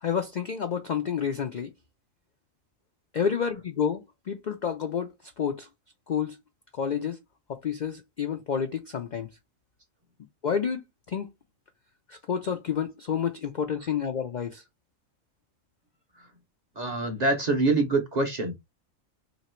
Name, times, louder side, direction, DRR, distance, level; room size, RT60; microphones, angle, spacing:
voice 1, 0.0-1.7 3.1-5.1 5.4-5.7 6.1-6.4 6.8-7.2 7.5-9.3 10.4-10.8 11.1-11.3 12.1-14.6, left 7 dB, 70° left, 0.4 m, -29 dB
voice 2, 16.8-18.6, right 2 dB, 40° right, 0.6 m, -25 dB
3.0 x 2.9 x 4.3 m
omnidirectional pair, 1.4 m